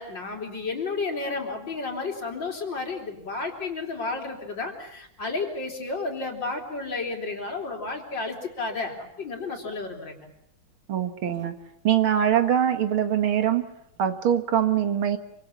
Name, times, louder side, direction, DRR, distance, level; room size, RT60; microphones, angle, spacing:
voice 1, 0.0-10.3, left 3 dB, 60° left, 2 dB, 4.0 m, -32 dB
voice 2, 10.9-11.5 11.8-13.6 14.0-15.2, right 10 dB, 80° right, 8 dB, 2.4 m, -23 dB
26.5 x 25.0 x 7.1 m, 0.79 s
omnidirectional pair, 2.3 m